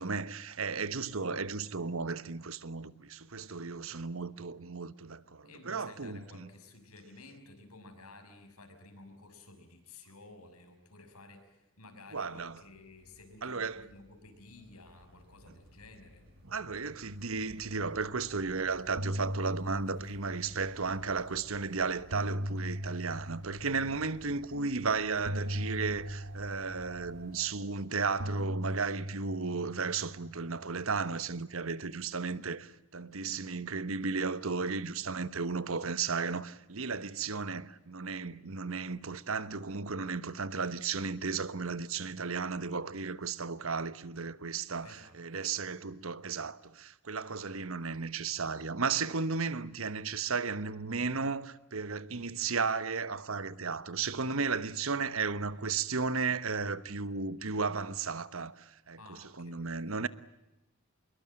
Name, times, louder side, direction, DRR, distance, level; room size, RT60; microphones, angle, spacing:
voice 1, 0.0-6.5 12.1-12.6 13.4-13.9 16.5-60.1, right 4 dB, 65° right, 1.2 m, -34 dB
voice 2, 5.4-16.2 23.7-24.0 33.3-33.7 44.8-45.6 59.0-60.0, left 2 dB, 90° left, 6.3 m, -54 dB
sound 1, 12.0-27.3, left 1 dB, 45° right, 7.9 m, -57 dB
sound 2, 18.3-18.5 18.8-21.1 21.8-24.2 25.2-27.7 28.2-30.8, equal, 90° right, 1.7 m, -38 dB
26.0 x 22.5 x 8.9 m
head